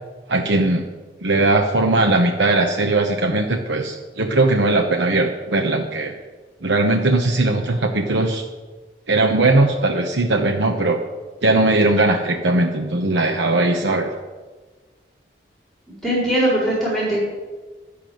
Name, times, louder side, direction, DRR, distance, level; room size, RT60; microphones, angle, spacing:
voice 1, 0.3-0.9 1.2-6.2 6.6-8.5 9.1-11.0 11.4-14.1, right 2 dB, 85° right, 3 dB, 0.9 m, -19 dB
voice 2, 16.0-17.2, right 1 dB, ahead, -6 dB, 4.3 m, -20 dB
12.0 x 6.8 x 9.2 m, 1.3 s
head